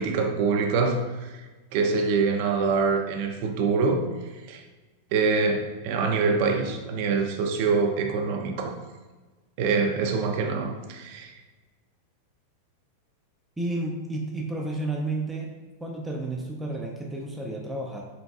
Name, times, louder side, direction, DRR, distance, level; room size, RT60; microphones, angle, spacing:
voice 1, 0.0-1.4 1.7-4.0 4.5-4.6 5.1-8.8 9.6-11.3, right 4 dB, 55° right, 4 dB, 0.5 m, -25 dB
voice 2, 13.6-15.5 15.8-18.0, right 2 dB, 10° right, -1 dB, 0.4 m, -31 dB
4.0 x 3.9 x 2.3 m, 1.3 s
supercardioid pair, 125°, 0 cm